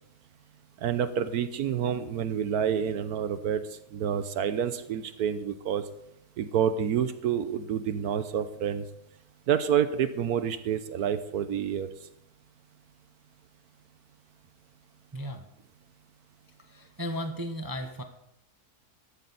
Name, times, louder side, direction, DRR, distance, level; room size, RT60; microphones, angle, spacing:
voice 1, 0.8-3.6 3.9-5.8 6.4-8.8 9.5-11.9, right 8 dB, 75° right, 11 dB, 1.2 m, -28 dB
voice 2, 15.1-15.5 16.6-18.0, equal, 20° right, 6 dB, 0.7 m, -35 dB
14.0 x 12.0 x 4.0 m, 0.80 s
omnidirectional pair, 1.7 m